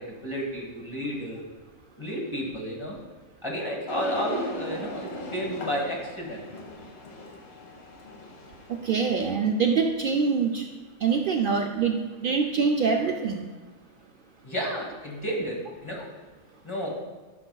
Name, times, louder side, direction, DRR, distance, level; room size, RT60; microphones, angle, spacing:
voice 1, 0.2-1.4 2.0-3.0 3.4-6.4 14.4-16.0 16.6-17.0, equal, 20° left, -2 dB, 1.3 m, -31 dB
sound 1, 3.9-9.3, left 1 dB, 50° left, 1.2 m, -39 dB
voice 2, 8.8-10.6 11.0-13.5, right 5 dB, 85° right, 2 dB, 0.4 m, -24 dB
12.5 x 5.6 x 2.3 m, 1.3 s
omnidirectional pair, 1.5 m